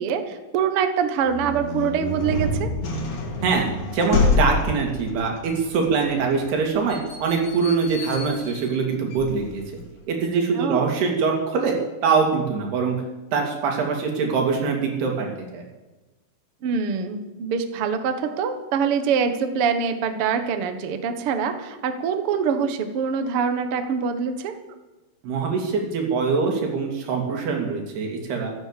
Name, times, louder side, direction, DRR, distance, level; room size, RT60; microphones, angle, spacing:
voice 1, 0.0-2.7 10.5-10.8 16.6-24.5, right 6 dB, 60° right, 8 dB, 1.5 m, -24 dB
sound 1, 1.2-9.9, left 3 dB, 65° left, 4.3 m, -28 dB
voice 2, 3.9-9.6 10.1-11.7 12.0-13.0 13.3-15.6 25.2-28.5, right 5 dB, 85° right, 1 dB, 4.8 m, -23 dB
14.5 x 13.5 x 6.9 m, 1.1 s
omnidirectional pair, 4.5 m